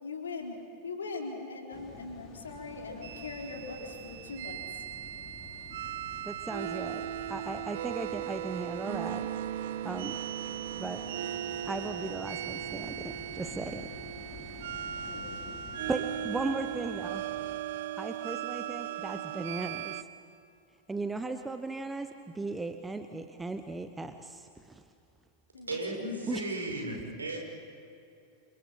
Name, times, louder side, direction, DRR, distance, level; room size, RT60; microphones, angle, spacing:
voice 1, 0.0-4.9 14.7-15.4 25.5-26.5, left 3 dB, 70° left, 1 dB, 4.0 m, -41 dB
sound 1, 1.7-17.6, left 3 dB, 30° left, 3.7 m, -50 dB
sound 2, 3.0-20.0, right 11 dB, 55° right, 0.8 m, -37 dB
voice 2, 6.2-9.3 9.8-10.2 10.7-11.2 11.6-13.9 15.9-17.2 18.0-20.0 20.9-24.8 26.3-26.4, right 3 dB, 10° right, 8 dB, 1.1 m, -37 dB
voice 3, 25.7-27.4, right 1 dB, 75° right, 1 dB, 5.7 m, -35 dB
28.0 x 28.0 x 5.8 m, 2.6 s
figure-of-eight pair, 90°, 0 cm